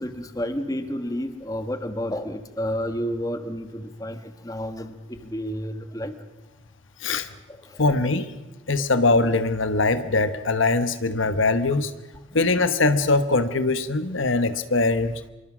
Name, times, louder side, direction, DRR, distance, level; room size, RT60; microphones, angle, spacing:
voice 1, 0.0-6.1 7.5-7.8, equal, 15° left, 9 dB, 1.4 m, -31 dB
voice 2, 7.8-8.3 8.7-11.9 12.3-15.1, left 3 dB, 75° left, 11 dB, 1.2 m, -22 dB
26.0 x 23.0 x 6.2 m, 1.1 s
head